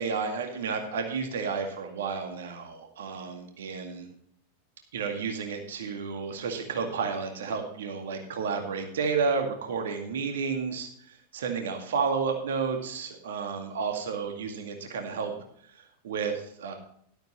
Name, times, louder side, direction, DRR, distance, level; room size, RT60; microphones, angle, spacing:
voice 1, 0.0-4.1 4.9-15.3 15.7-16.7, right 5 dB, 60° right, 4 dB, 2.0 m, -31 dB
12.5 x 12.5 x 3.1 m, 0.67 s
figure-of-eight pair, 90°, 0 cm